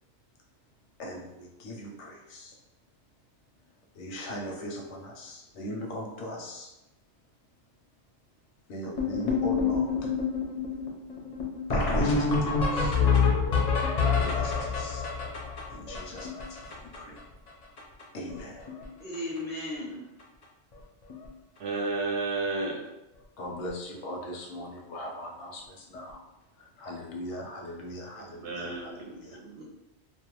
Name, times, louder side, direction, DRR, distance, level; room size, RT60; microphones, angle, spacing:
voice 1, 1.0-2.5 3.9-6.7 8.7-10.2 11.7-13.0 13.9-15.0 15.7-17.2 18.1-18.7 23.4-26.2 26.6-29.4, equal, 85° left, 0 dB, 0.9 m, -39 dB
sound 1, 9.0-17.2 17.5-17.6 17.8-18.0 18.3-18.8 19.1-19.4 20.2-20.3 20.7-20.8 21.1-21.3 23.5-23.6 25.9-26.0, left 5 dB, 50° left, 0.5 m, -27 dB
voice 2, 18.8-20.1 29.6-29.7, left 1 dB, 15° right, -6 dB, 0.3 m, -36 dB
voice 3, 21.6-22.8 28.1-29.6, right 3 dB, 70° right, 1 dB, 0.8 m, -32 dB
2.4 x 2.2 x 2.8 m, 0.94 s
omnidirectional pair, 1.2 m